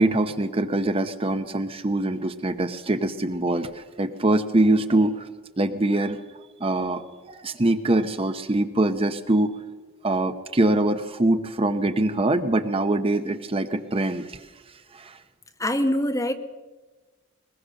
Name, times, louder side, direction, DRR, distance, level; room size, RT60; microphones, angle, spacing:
voice 1, 0.0-5.3 5.6-6.2 6.6-9.5 10.0-14.4 14.9-15.2, right 2 dB, 30° right, 9 dB, 0.8 m, -23 dB
voice 2, 15.6-16.3, left 1 dB, 15° left, 6 dB, 1.3 m, -23 dB
21.5 x 21.0 x 6.5 m, 1.3 s
head